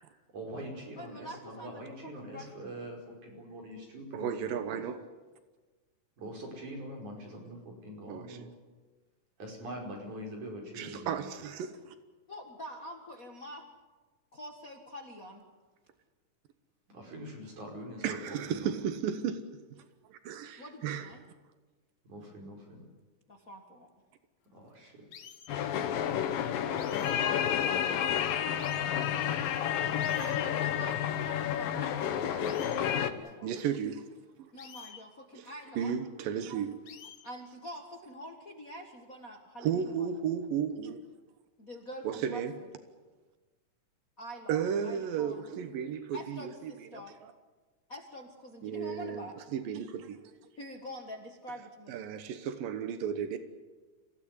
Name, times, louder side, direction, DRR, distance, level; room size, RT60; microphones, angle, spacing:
voice 1, 0.3-4.8 6.2-8.5 9.4-11.2 16.9-18.7 22.0-22.8 24.5-25.0, right 1 dB, 60° right, 6.6 m, -43 dB
voice 2, 1.0-2.9 12.3-13.6 14.3-15.4 20.6-21.2 23.3-23.9 29.9-32.5 32.8-33.5 34.5-36.0 37.2-40.1 41.6-42.7 44.2-45.5 46.1-47.2 47.9-49.4 50.5-52.0, equal, 35° left, 1.5 m, -46 dB
voice 3, 4.1-5.0 8.1-8.5 10.7-11.9 18.0-19.5 19.7-19.8 20.3-21.1 28.9-29.0 33.4-34.1 35.3-35.5 35.8-36.8 39.6-41.0 42.0-42.5 44.5-46.5 46.9-47.3 48.6-50.2 51.9-53.4, right 8 dB, 85° right, 2.9 m, -34 dB
sound 1, 25.1-25.6 26.8-27.3 27.8-27.9 28.6-28.8 29.5-29.6 30.0-30.5 30.9-31.0 31.4-31.5 32.4-32.8 33.3-33.4 34.6-35.0 35.4-35.5 36.8-37.3 37.7-38.0, left 8 dB, 55° left, 1.6 m, -49 dB
sound 2, 25.5-33.1, left 9 dB, 85° left, 2.9 m, -30 dB
26.0 x 16.5 x 9.8 m
omnidirectional pair, 3.9 m